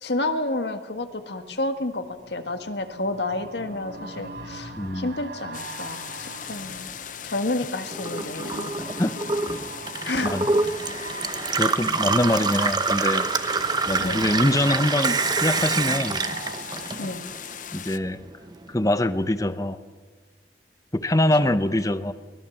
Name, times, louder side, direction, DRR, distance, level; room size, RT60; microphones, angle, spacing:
voice 1, 0.0-6.9 7.2-9.0 10.0-10.4 14.0-14.2 17.0-17.2 21.4-21.6, left 2 dB, 75° left, 8 dB, 1.6 m, -30 dB
sound 1, 1.0-18.8 19.2-19.3, right 2 dB, 80° right, 4.4 m, -42 dB
voice 2, 4.8-5.1 9.0-9.2 10.2-10.5 11.6-13.3 13.9-16.2 17.7-18.2 18.7-19.8 20.9-22.1, left 1 dB, 20° left, 12 dB, 0.9 m, -23 dB
sound 2, 5.5-18.0, left 9 dB, 45° left, 0.7 m, -39 dB
Gurgling / Water tap faucet / Sink (filling or washing), 7.9-17.4 17.7-18.6, right 4 dB, 25° right, 0.9 m, -26 dB
23.5 x 19.0 x 7.2 m, 1.4 s
head